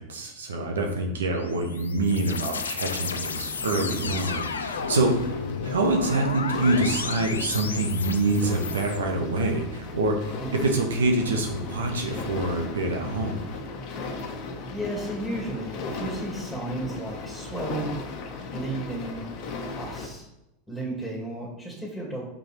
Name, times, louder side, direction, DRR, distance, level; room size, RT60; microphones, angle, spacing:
voice 1, 0.0-13.5, right 2 dB, 75° right, 2 dB, 1.1 m, -26 dB
sound 1, 1.4-9.0, left 5 dB, 80° left, 0.5 m, -33 dB
sound 2, 2.9-20.1, left 3 dB, 50° left, 1.2 m, -37 dB
voice 2, 14.7-18.0 18.5-19.3 19.8-20.3 20.7-22.3, right 2 dB, ahead, -2 dB, 2.4 m, -33 dB
5.7 x 5.4 x 4.4 m, 0.88 s
figure-of-eight pair, 85°, 0 cm